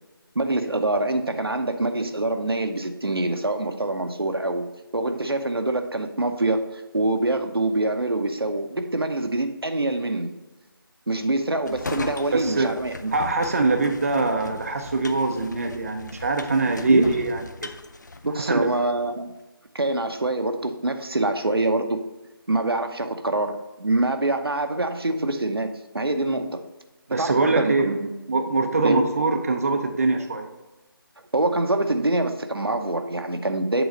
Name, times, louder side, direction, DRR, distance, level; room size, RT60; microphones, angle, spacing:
voice 1, 0.3-4.7 4.9-10.3 11.1-13.1 16.9-17.1 18.2-19.3 19.7-22.0 22.5-26.6 27.2-28.1 28.8-29.0 31.3-33.8, right 2 dB, 80° right, 6 dB, 0.8 m, -25 dB
sound 1, 11.7-18.9, left 3 dB, 50° left, 0.5 m, -38 dB
voice 2, 12.3-12.8 13.1-17.7 18.3-18.8 27.1-27.9 28.3-30.5, right 3 dB, 40° right, 5 dB, 0.5 m, -23 dB
8.0 x 3.9 x 5.2 m, 1.1 s
figure-of-eight pair, 160°, 13 cm